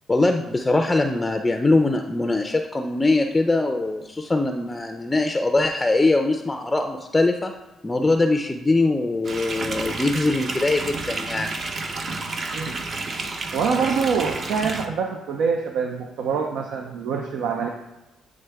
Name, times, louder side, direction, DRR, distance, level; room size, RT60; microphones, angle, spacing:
voice 1, 0.1-7.5 7.8-11.5, left 2 dB, 15° left, 5 dB, 0.4 m, -22 dB
sound 1, 9.2-14.9, right 3 dB, 50° right, 0.7 m, -30 dB
voice 2, 13.5-17.7, right 6 dB, 85° right, 2 dB, 0.5 m, -25 dB
8.6 x 3.6 x 3.4 m, 1.1 s
cardioid pair, 90°, 0 cm